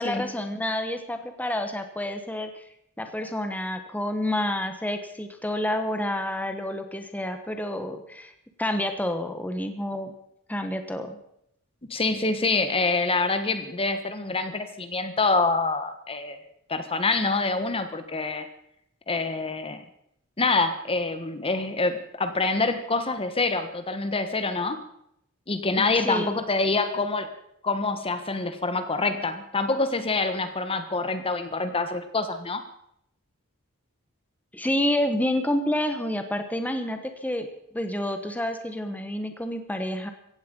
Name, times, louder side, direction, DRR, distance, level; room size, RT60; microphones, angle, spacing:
voice 1, 0.0-2.6 3.0-8.3 8.6-10.1 10.5-11.2 25.7-26.3 34.5-37.5 37.7-40.1, left 1 dB, 10° left, 7 dB, 1.3 m, -29 dB
voice 2, 11.9-16.4 16.7-18.5 19.1-19.8 20.4-24.8 25.5-27.3 27.6-32.6, left 3 dB, 25° left, 9 dB, 1.3 m, -26 dB
17.0 x 15.5 x 5.4 m, 0.75 s
head